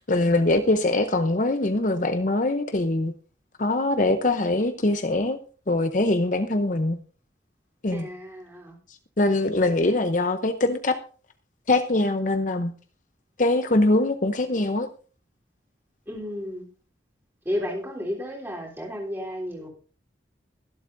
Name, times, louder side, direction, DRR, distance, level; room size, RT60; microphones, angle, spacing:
voice 1, 0.0-3.1 3.6-5.4 5.7-7.0 7.8-8.1 9.2-11.0 11.7-12.7 13.4-14.9, left 2 dB, 45° left, 0.7 m, -23 dB
voice 2, 7.9-8.8 9.6-9.9 16.1-16.6 17.5-19.7, left 1 dB, 10° right, 3.5 m, -33 dB
23.0 x 8.0 x 2.6 m
head